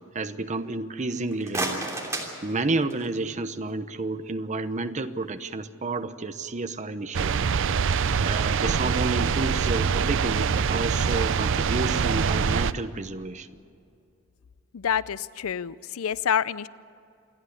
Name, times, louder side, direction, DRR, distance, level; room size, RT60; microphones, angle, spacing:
voice 1, 0.0-1.9 2.4-7.6 8.2-13.5, right 3 dB, 35° right, 10 dB, 0.9 m, -30 dB
sound 1, 1.2-3.2, right 2 dB, 15° right, 3.1 m, -33 dB
sound 2, 7.1-12.7, right 6 dB, 60° right, 0.5 m, -24 dB
voice 2, 14.7-16.7, left 8 dB, 70° left, 18 dB, 0.5 m, -27 dB
28.0 x 11.0 x 9.9 m, 2.4 s
head